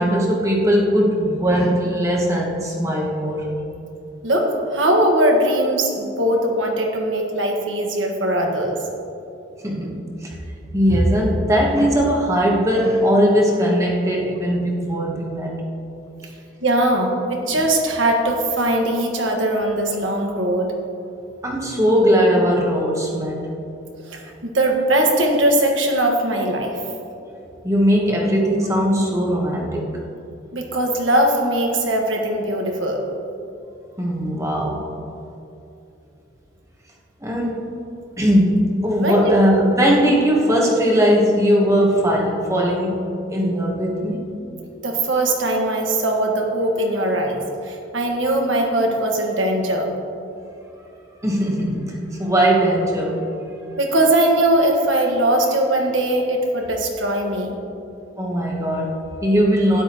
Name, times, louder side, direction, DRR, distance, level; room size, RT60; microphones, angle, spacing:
voice 1, 0.0-3.5 9.6-10.4 10.7-15.5 21.4-23.4 27.6-29.9 34.0-34.9 37.2-37.6 38.2-44.4 51.2-53.2 58.2-59.8, equal, 15° right, -1 dB, 1.1 m, -19 dB
voice 2, 4.2-8.8 16.6-20.7 24.1-26.8 30.5-33.0 39.0-39.4 44.8-49.9 53.8-57.5, right 1 dB, 80° right, 1 dB, 1.5 m, -20 dB
12.5 x 10.0 x 3.0 m, 2.8 s
head